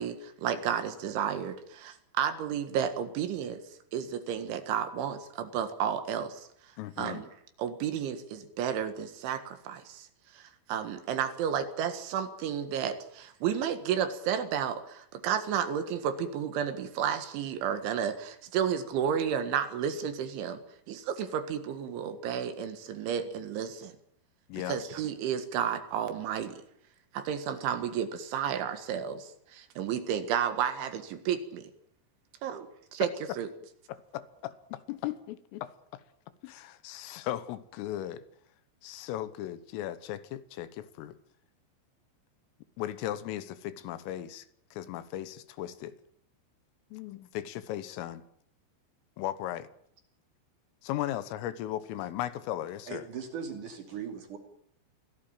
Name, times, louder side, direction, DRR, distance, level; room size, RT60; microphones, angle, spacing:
voice 1, 0.0-3.6 3.9-6.4 7.0-7.3 7.6-10.1 10.4-20.6 20.9-24.0 24.7-26.6 27.1-31.7 32.4-33.1 33.4-33.5, right 8 dB, 70° right, 3.9 m, -32 dB
voice 2, 6.8-7.2 23.3-23.4 24.5-24.8 33.0-33.1 33.9-36.0 36.4-38.2 38.8-41.2 42.8-44.5 44.7-46.0 46.9-48.2 49.2-49.7 50.8-53.1, left 13 dB, 80° left, 3.7 m, -37 dB
voice 3, 52.9-54.4, right 6 dB, 45° right, 3.5 m, -39 dB
25.0 x 17.0 x 8.9 m
omnidirectional pair, 5.9 m